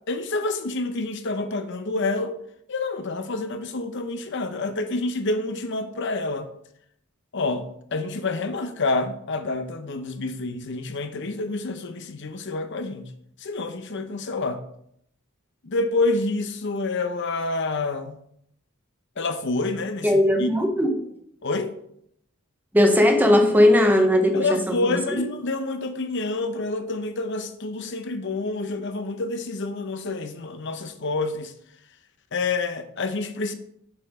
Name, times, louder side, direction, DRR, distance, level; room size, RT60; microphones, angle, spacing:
voice 1, 0.1-2.3 2.7-6.5 7.3-13.1 13.4-14.6 15.6-18.2 19.2-20.5 21.4-21.7 24.3-31.5 32.3-33.5, left 3 dB, 60° left, 0.8 m, -28 dB
voice 2, 20.0-21.0 22.7-25.0, left 1 dB, 10° right, 0.9 m, -18 dB
7.3 x 5.6 x 3.7 m
head